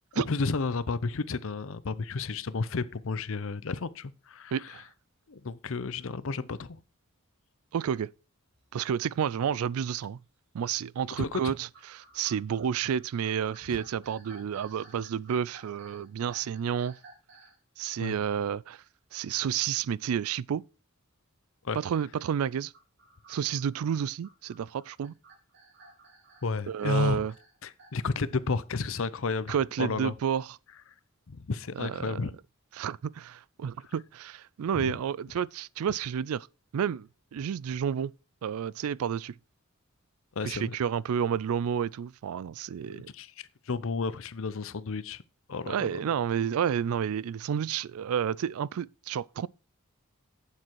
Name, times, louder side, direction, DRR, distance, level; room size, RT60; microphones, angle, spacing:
voice 1, 0.1-4.7 5.3-6.8 11.2-11.5 18.0-18.1 21.6-21.8 26.4-27.2 27.6-30.1 31.3-32.3 34.7-35.0 40.4-40.8 42.9-45.2 45.5-46.0, left 4 dB, 65° left, 0.7 m, -32 dB
voice 2, 4.5-4.8 7.7-8.1 8.7-10.2 10.5-17.0 17.8-18.8 19.1-20.6 21.7-22.7 23.3-25.1 26.7-27.3 29.5-30.6 31.8-32.3 32.8-36.5 36.7-38.1 38.4-39.3 40.4-43.1 45.7-49.5, right 8 dB, 75° right, 0.3 m, -30 dB
sound 1, 8.5-8.7 9.3-9.4 10.0-10.4 11.5-17.6 22.5-28.1, right 3 dB, 55° right, 2.9 m, -55 dB
8.6 x 7.5 x 4.6 m
head